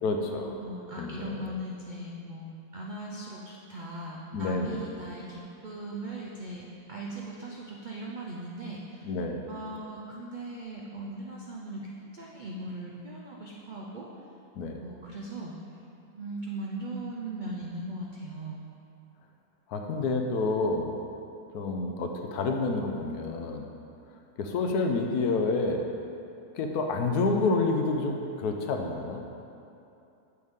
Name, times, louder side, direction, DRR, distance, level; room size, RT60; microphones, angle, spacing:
voice 1, 0.0-0.6 1.0-1.5 4.3-4.8 9.0-9.4 14.6-14.8 19.7-20.9 21.5-23.6 24.4-25.8 26.5-29.2, left 3 dB, 75° left, 3 dB, 1.2 m, -28 dB
voice 2, 0.6-6.6 6.9-9.1 9.5-14.1 14.8-15.6 16.1-18.6, right 1 dB, 65° right, -3 dB, 0.4 m, -39 dB
7.8 x 6.4 x 3.6 m, 2.7 s
omnidirectional pair, 1.7 m